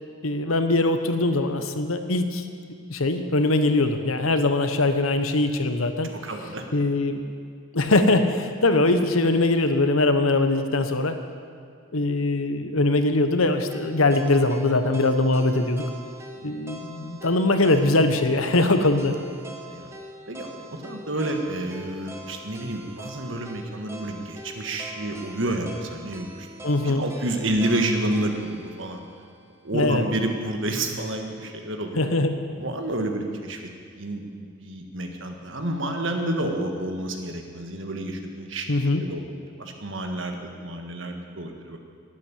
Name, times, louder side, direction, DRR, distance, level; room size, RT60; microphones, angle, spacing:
voice 1, 0.2-2.4 2.9-6.2 6.7-7.2 7.7-11.2 11.9-15.9 16.4-19.1 26.6-27.0 29.7-30.0 31.9-32.4 38.7-39.0, left 2 dB, 85° left, 8 dB, 1.1 m, -22 dB
voice 2, 6.2-6.6 16.4-16.6 19.7-19.9 20.3-26.5 26.8-29.0 29.6-32.0 32.5-33.6 34.0-38.7 39.1-39.2 39.6-41.8, right 1 dB, 65° right, 4 dB, 1.6 m, -29 dB
sound 1, 13.7-29.8, right 1 dB, 15° right, 1.0 m, -43 dB
12.0 x 9.3 x 10.0 m, 2.2 s
head